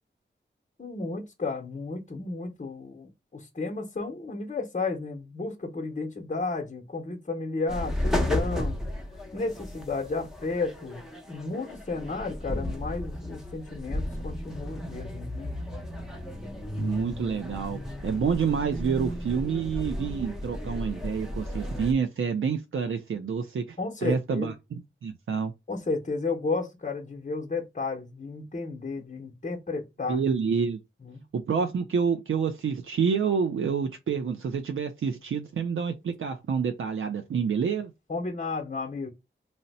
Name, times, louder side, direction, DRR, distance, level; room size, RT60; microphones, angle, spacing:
voice 1, 0.8-8.8 9.3-15.5 23.8-24.5 25.7-30.2 31.0-31.2 38.1-39.1, left 3 dB, 35° left, 0.7 m, -33 dB
sound 1, 7.7-21.9, left 1 dB, ahead, 0.7 m, -34 dB
voice 2, 16.8-25.5 30.1-30.8 31.3-37.9, right 6 dB, 80° right, 0.4 m, -28 dB
2.7 x 2.1 x 4.0 m
wide cardioid pair, 70°, 20 cm